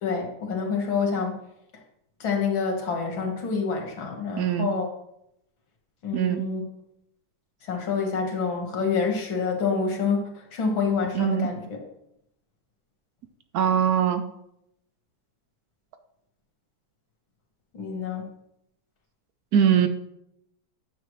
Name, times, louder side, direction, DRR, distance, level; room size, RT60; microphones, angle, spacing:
voice 1, 0.0-1.4 2.2-4.9 6.0-6.6 7.6-11.8 17.7-18.2, left 5 dB, 80° left, 2 dB, 2.3 m, -27 dB
voice 2, 4.4-4.7 6.1-6.4 11.1-11.5 13.5-14.2 19.5-19.9, right 9 dB, 70° right, 8 dB, 0.9 m, -21 dB
9.4 x 7.1 x 3.1 m, 0.80 s
omnidirectional pair, 2.1 m